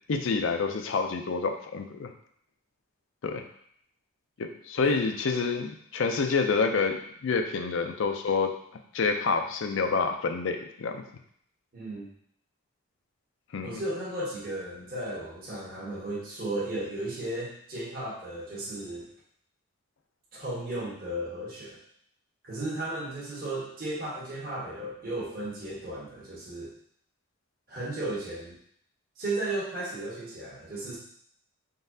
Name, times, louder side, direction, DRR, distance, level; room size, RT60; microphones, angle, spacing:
voice 1, 0.1-2.1 3.2-3.4 4.4-8.5 8.9-11.0 13.5-13.8, left 4 dB, 70° left, 5 dB, 0.4 m, -28 dB
voice 2, 11.7-12.1 13.6-19.1 20.3-21.8 22.4-26.7 27.7-28.6 29.2-31.0, right 1 dB, 45° right, -6 dB, 1.1 m, -35 dB
3.9 x 3.5 x 2.7 m, 0.67 s
head